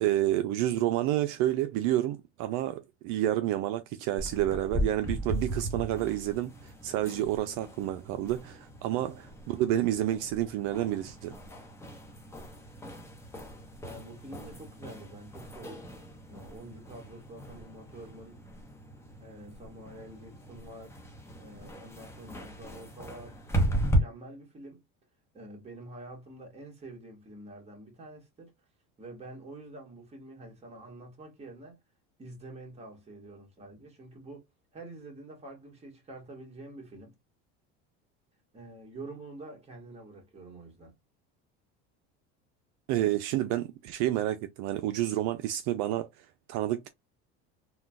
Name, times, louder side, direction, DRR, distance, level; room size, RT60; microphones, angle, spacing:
voice 1, 0.0-11.4 42.9-46.9, right 13 dB, 65° right, 0.4 m, -29 dB
sound 1, 4.2-24.0, right 1 dB, 10° left, 0.9 m, -36 dB
voice 2, 13.8-15.9 16.3-18.4 19.2-20.9 21.4-23.4 23.7-24.8 25.3-28.5 29.0-31.8 32.2-34.5 34.7-37.1 38.5-40.9, right 2 dB, 20° right, 1.6 m, -47 dB
3.7 x 2.3 x 2.3 m
supercardioid pair, 115°, 31 cm